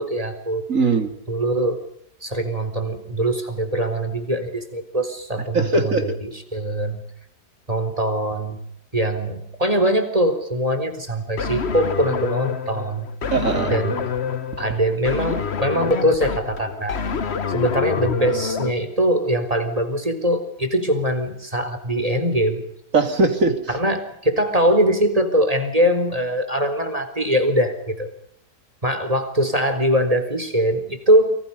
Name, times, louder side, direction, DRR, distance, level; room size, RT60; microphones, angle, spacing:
voice 1, 0.0-0.6 1.3-1.8 2.2-7.0 7.7-8.6 8.9-13.1 13.7-14.0 14.6-17.0 17.5-22.6 23.7-28.1 28.8-31.4, right 1 dB, 20° right, 8 dB, 3.9 m, -22 dB
voice 2, 0.7-1.1 5.5-6.2 13.3-13.9 22.9-23.7, right 3 dB, 50° right, 7 dB, 3.3 m, -20 dB
sound 1, 11.4-18.7, left 6 dB, 45° left, 1.3 m, -27 dB
29.5 x 25.5 x 5.5 m, 0.73 s
omnidirectional pair, 1.8 m